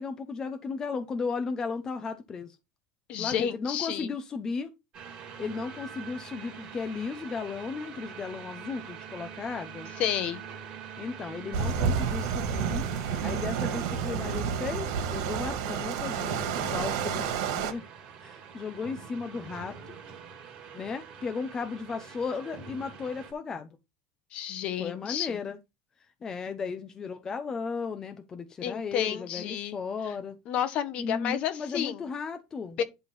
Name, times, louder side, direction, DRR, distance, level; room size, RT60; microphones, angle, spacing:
voice 1, 0.0-2.5 3.2-4.7 5.4-9.9 11.0-12.9 13.2-17.8 18.2-20.0 20.7-23.7 24.8-25.6 26.2-30.4 31.0-32.8, left 5 dB, 20° left, 0.8 m, -35 dB
voice 2, 3.1-4.1 10.0-10.4 24.3-25.4 28.6-29.8 30.5-32.1 32.8-32.9, left 9 dB, 45° left, 1.2 m, -31 dB
sound 1, 4.9-23.3, right 6 dB, 35° right, 2.5 m, -44 dB
sound 2, 11.5-17.7, right 7 dB, 75° right, 2.1 m, -30 dB
11.0 x 3.8 x 6.1 m
supercardioid pair, 145°, 3 cm